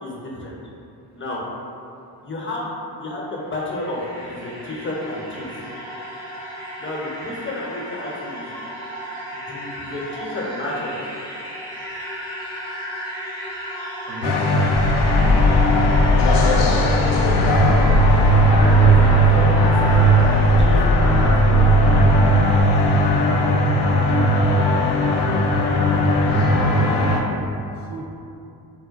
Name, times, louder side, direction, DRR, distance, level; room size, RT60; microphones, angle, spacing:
voice 1, 0.0-0.5 1.2-1.4 2.2-5.6 6.8-8.5 9.3-11.0 17.7-18.1 18.6-21.6, left 1 dB, 30° left, -4 dB, 0.6 m, -31 dB
sound 1, 3.2-21.9, equal, 55° right, 1.5 m, -35 dB
voice 2, 14.1-14.5 15.2-15.9 26.2-27.0 27.8-28.0, right 1 dB, 40° right, -3 dB, 0.5 m, -34 dB
sound 2, 14.2-27.2, right 1 dB, 70° left, 0.5 m, -17 dB
sound 3, 14.7-22.6, left 2 dB, 75° right, 1.0 m, -21 dB
3.8 x 2.1 x 2.4 m, 2.6 s
supercardioid pair, 65°, 44 cm